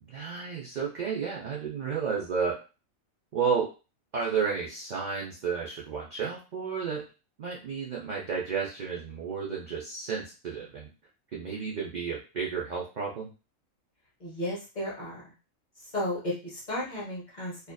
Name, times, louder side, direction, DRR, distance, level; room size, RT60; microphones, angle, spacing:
voice 1, 0.0-2.6 3.3-3.7 4.1-7.1 7.4-10.9 11.3-13.3, right 6 dB, 70° right, -3 dB, 0.4 m, -32 dB
voice 2, 14.2-15.3 15.9-17.7, left 1 dB, 40° left, -5 dB, 0.8 m, -34 dB
2.5 x 2.4 x 2.2 m, 0.32 s
omnidirectional pair, 1.4 m